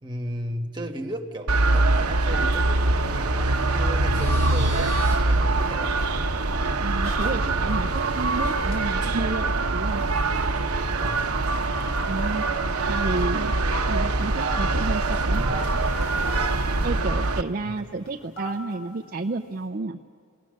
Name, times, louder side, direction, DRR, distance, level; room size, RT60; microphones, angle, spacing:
voice 1, 0.0-4.9 5.2-6.0 11.0-11.4 17.6-17.9, equal, 20° right, 3 dB, 1.3 m, -35 dB
sound 1, 1.5-17.4, right 2 dB, 85° right, 1.0 m, -23 dB
sound 2, 3.4-4.8 7.4-8.9 11.4-12.7 15.4-16.9, left 1 dB, 80° left, 3.1 m, -43 dB
sound 3, 4.0-5.2 7.0-7.3 7.7-7.8 8.1-8.3 8.7-8.8 9.2-9.3 10.0-11.2 11.6-11.7 11.9-12.0 12.2-12.3 12.9-13.3 14.3-14.9 15.5-15.6 18.1-18.7, equal, 65° left, 5.2 m, -38 dB
voice 2, 6.8-10.0 12.1-12.4 12.9-13.5 13.9-15.4 16.8-20.0, right 3 dB, 40° right, 4 dB, 0.5 m, -31 dB
29.0 x 18.0 x 6.4 m, 2.2 s
head